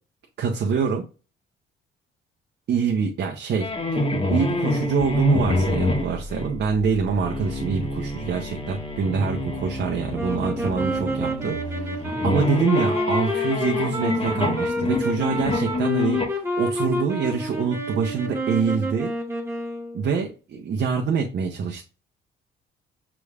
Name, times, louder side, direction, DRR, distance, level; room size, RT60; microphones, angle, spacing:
voice 1, 0.4-1.1 2.7-4.0 4.3-19.1 19.9-21.8, right 6 dB, 60° right, 1 dB, 0.8 m, -25 dB
sound 1, 3.6-6.5 7.2-16.3, left 2 dB, 30° left, 1.2 m, -27 dB
sound 2, 5.0-10.0, left 1 dB, 75° left, 2.3 m, -40 dB
sound 3, 10.1-20.2, equal, 15° right, 1.1 m, -29 dB
6.0 x 3.3 x 2.4 m, 0.34 s
cardioid pair, 90°, 20 cm